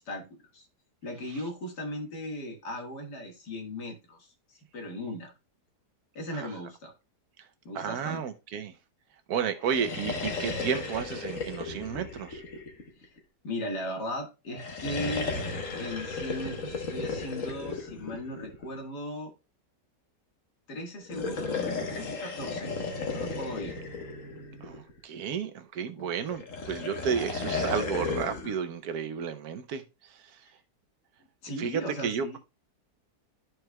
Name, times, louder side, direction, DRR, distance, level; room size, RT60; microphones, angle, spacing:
voice 1, 1.0-5.3 6.2-6.9 7.7-8.2 13.0-13.1 13.4-15.3 15.7-19.3 20.7-22.8 23.1-23.8 26.0-26.1 31.4-32.4, left 1 dB, 80° left, 2.2 m, -37 dB
voice 2, 7.7-8.7 9.3-12.4 24.6-29.8 31.6-32.4, right 7 dB, 70° right, 1.2 m, -32 dB
sound 1, 9.6-13.2 14.5-18.8 21.0-25.0 26.3-28.6, left 4 dB, 55° left, 1.5 m, -35 dB
13.0 x 4.6 x 2.2 m
omnidirectional pair, 1.7 m